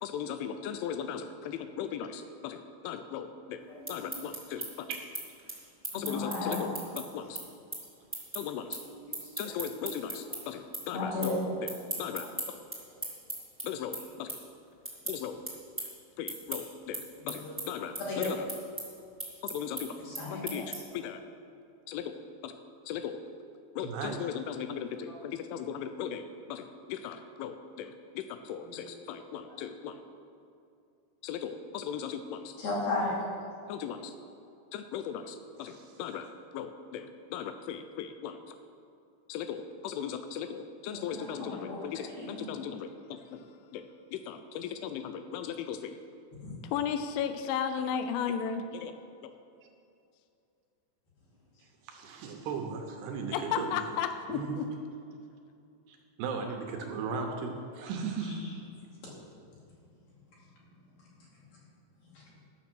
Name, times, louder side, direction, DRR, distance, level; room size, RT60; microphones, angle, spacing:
voice 1, 0.0-3.6 3.9-4.9 5.9-7.4 8.3-8.8 9.4-12.6 13.6-14.4 15.1-15.4 16.2-18.4 19.4-20.0 20.3-21.2 21.9-22.5 22.9-23.2 23.8-30.0 31.2-32.6 33.7-34.1 34.7-36.3 36.5-38.6 39.3-46.0 46.6-49.0 49.2-49.4 53.3-54.6, left 8 dB, 90° left, 8 dB, 3.0 m, -37 dB
sound 1, 3.6-10.4 10.7-11.3 11.6-21.0, right 2 dB, 5° right, 1.0 m, -39 dB
voice 2, 3.7-4.2 5.9-6.7 8.9-9.7 10.9-11.5 12.2-12.3 17.2-17.5 18.1-18.3 20.0-20.7 25.1-25.2 28.6-28.7 29.1-29.2 29.5-29.6 32.6-33.2 40.9-42.3 46.4-46.6 62.1-62.4, left 3 dB, 55° left, -6 dB, 4.0 m, -36 dB
voice 3, 23.8-24.2 35.6-35.9 51.8-53.8 54.3-54.6 55.9-58.4, right 5 dB, 75° right, 3 dB, 2.6 m, -36 dB
12.5 x 7.1 x 6.1 m, 2.5 s
omnidirectional pair, 5.4 m